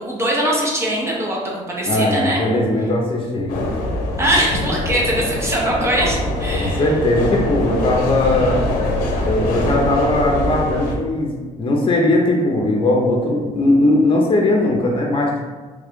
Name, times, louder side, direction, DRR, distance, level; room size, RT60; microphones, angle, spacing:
voice 1, 0.0-2.4 4.2-6.9, right 1 dB, 20° right, -3 dB, 0.8 m, -21 dB
voice 2, 1.9-3.6 6.6-8.7 9.2-15.4, left 1 dB, 40° left, -1 dB, 0.7 m, -18 dB
sound 1, 3.5-10.9, left 1 dB, 85° left, 0.6 m, -23 dB
3.3 x 2.4 x 3.6 m, 1.4 s
cardioid pair, 100°, 14 cm